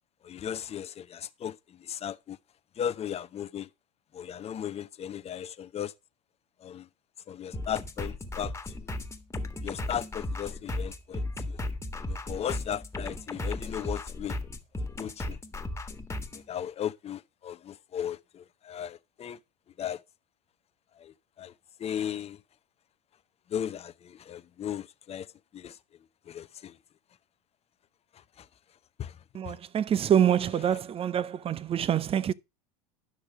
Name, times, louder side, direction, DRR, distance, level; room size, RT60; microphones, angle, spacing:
voice 1, 0.2-2.4 2.8-3.7 4.1-5.9 6.6-6.9 7.3-8.5 9.6-11.6 12.1-14.4 15.0-15.4 16.3-19.4 19.8-20.0 21.0-21.5 21.8-22.4 23.5-25.8 26.3-26.8 28.1-28.5 29.0-29.2 29.5-29.6, left 9 dB, 30° left, 0.8 m, -36 dB
sound 1, 7.5-16.4, left 2 dB, 10° left, 1.7 m, -35 dB
voice 2, 29.3-32.3, right 9 dB, 30° right, 0.6 m, -26 dB
10.5 x 6.1 x 4.9 m
hypercardioid pair, 85°, 21 cm